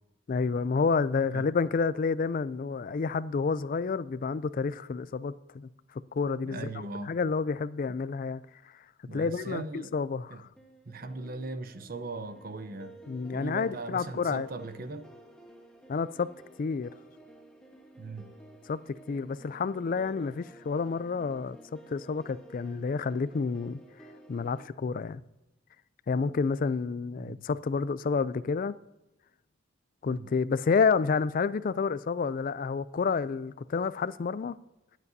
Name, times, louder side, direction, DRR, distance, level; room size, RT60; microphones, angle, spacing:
voice 1, 0.3-5.7 6.1-8.4 9.1-10.5 13.1-14.5 15.9-16.3 16.6-16.9 18.7-21.6 21.9-23.8 24.3-25.2 26.1-28.7 30.0-34.6, left 5 dB, 45° left, 0.3 m, -29 dB
voice 2, 6.4-7.1 9.1-9.9 10.3-10.4 10.8-12.9 13.3-15.1 18.0-18.4 27.2-27.5 30.1-30.3, right 3 dB, 45° right, 0.7 m, -39 dB
sound 1, 10.6-24.7, right 1 dB, 5° left, 1.2 m, -53 dB
21.5 x 8.3 x 2.7 m
head